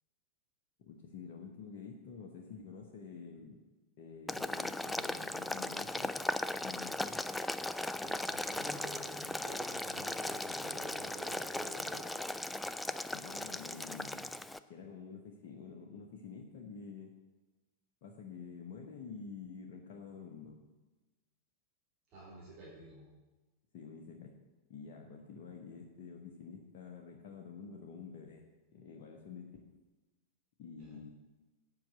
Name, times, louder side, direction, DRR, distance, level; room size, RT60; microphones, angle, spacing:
voice 1, 0.8-3.6 4.0-6.1 6.5-7.2 13.1-14.3 14.7-17.1 18.0-20.6 23.7-24.4 24.7-28.4 28.7-29.7 30.6-31.1, left 5 dB, 45° left, 0 dB, 1.1 m, -49 dB
Boiling, 4.3-14.6, left 2 dB, 5° left, 0.3 m, -38 dB
voice 2, 7.7-12.1 22.1-23.1 30.8-30.9, right 2 dB, 35° right, -7 dB, 3.1 m, -50 dB
7.6 x 5.9 x 7.7 m, 1.2 s
figure-of-eight pair, 90°, 0 cm